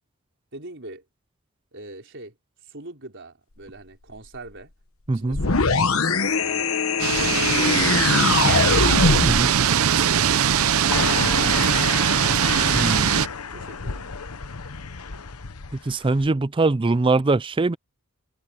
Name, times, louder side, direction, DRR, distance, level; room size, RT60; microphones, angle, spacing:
voice 1, 0.5-1.0 1.7-2.3 2.6-4.7 5.1-6.7 7.1-8.8 13.5-14.1, right 2 dB, 55° right, 5.0 m, -41 dB
sound 1, 5.3-9.5, left 4 dB, 65° left, 1.2 m, -21 dB
sound 2, 7.0-13.3, right 8 dB, 70° right, 0.7 m, -21 dB
sound 3, 10.9-16.3, left 5 dB, 85° left, 1.1 m, -31 dB
voice 2, 12.7-13.2 15.9-17.8, right 3 dB, 20° right, 0.4 m, -22 dB
head